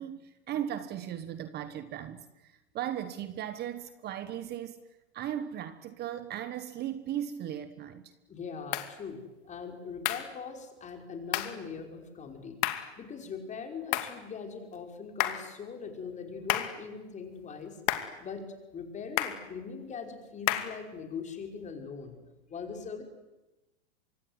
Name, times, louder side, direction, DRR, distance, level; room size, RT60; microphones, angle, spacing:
voice 1, 0.0-4.8 5.1-8.1, right 10 dB, 30° right, 12 dB, 1.3 m, -37 dB
voice 2, 8.3-9.2 9.5-12.6 13.0-17.8 18.2-18.4 18.7-22.2 22.5-23.0, left 5 dB, 20° left, 4 dB, 5.5 m, -41 dB
sound 1, 8.7-8.9 10.0-10.3 11.3-11.6 12.6-12.9 13.9-14.2 15.2-15.5 16.5-16.8 17.9-18.2 19.2-19.5 20.5-20.8, left 14 dB, 45° left, 2.6 m, -31 dB
25.5 x 23.5 x 9.7 m, 1.0 s
hypercardioid pair, 120°, 32 cm